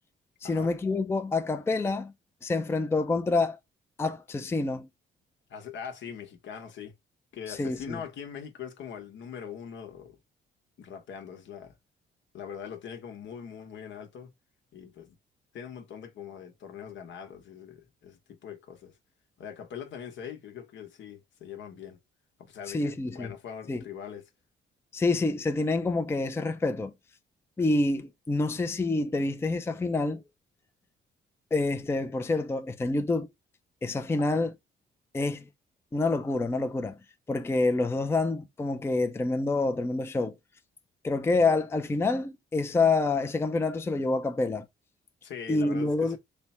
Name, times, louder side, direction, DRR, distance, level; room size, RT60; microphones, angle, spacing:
voice 1, 0.4-2.1 2.4-3.6 4.0-4.9 7.5-8.0 22.7-23.3 23.7-23.8 24.9-26.9 27.6-30.2 31.5-33.3 33.8-34.5 35.1-35.5 35.9-37.0 37.3-40.3 41.0-44.7 45.5-46.2, left 3 dB, 10° left, 0.4 m, -27 dB
voice 2, 5.5-6.9 7.3-10.2 10.8-11.7 12.3-14.3 14.7-15.1 15.5-18.9 19.4-22.0 22.4-24.2 45.2-46.2, left 8 dB, 70° left, 0.9 m, -42 dB
3.3 x 2.1 x 4.1 m
cardioid pair, 90°, 20 cm